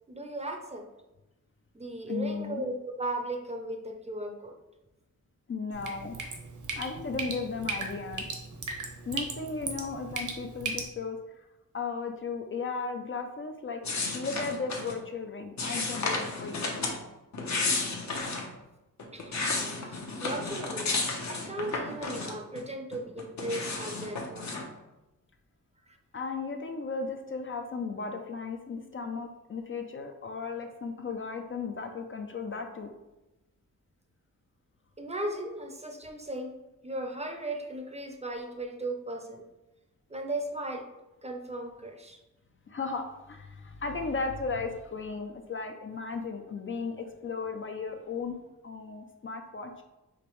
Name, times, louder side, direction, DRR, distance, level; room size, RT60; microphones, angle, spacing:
voice 1, 0.1-0.9 1.7-4.5 19.1-19.3 19.9-21.0 21.3-24.5 35.0-36.5 36.8-39.4 40.1-40.9 41.2-42.2, right 1 dB, 20° right, 3 dB, 0.6 m, -36 dB
voice 2, 2.1-2.7 5.5-6.2 6.7-8.3 9.1-11.5 11.7-13.8 14.1-16.9 26.1-32.9 42.7-49.8, left 4 dB, 40° left, 5 dB, 0.5 m, -35 dB
Drip, 5.7-10.8, right 4 dB, 65° right, 0.9 m, -37 dB
sound 1, 13.8-15.0 15.6-17.0 17.3-18.5 19.0-22.6 22.9-24.6, left 3 dB, 60° left, 0.9 m, -32 dB
5.1 x 3.0 x 3.1 m, 1.0 s
wide cardioid pair, 95°, 32 cm